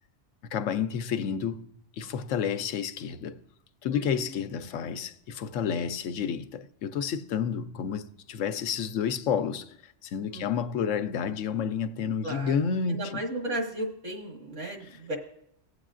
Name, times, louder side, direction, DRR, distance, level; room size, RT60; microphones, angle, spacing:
voice 1, 0.5-1.7 2.0-3.4 3.8-13.2, left 7 dB, 85° left, 1.0 m, -30 dB
voice 2, 3.9-4.4 10.3-10.4 12.2-12.5 12.9-15.2, right 1 dB, 75° right, 2.0 m, -35 dB
18.0 x 8.2 x 2.5 m
omnidirectional pair, 1.3 m